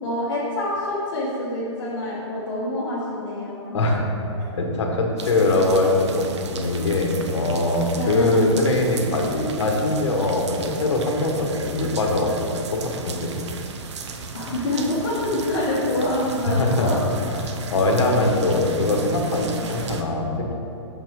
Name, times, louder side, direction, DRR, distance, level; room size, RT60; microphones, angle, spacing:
voice 1, 0.0-3.8 8.0-8.4 14.3-17.0, left 1 dB, 45° left, -10 dB, 1.6 m, -26 dB
voice 2, 3.7-4.1 4.5-6.3 6.5-13.4 16.5-17.0 17.3-20.5, left 2 dB, 70° left, 1 dB, 1.3 m, -22 dB
sound 1, 5.2-20.0, right 4 dB, 70° right, 0.7 m, -35 dB
6.5 x 5.8 x 4.7 m, 2.8 s
hypercardioid pair, 180°, 16 cm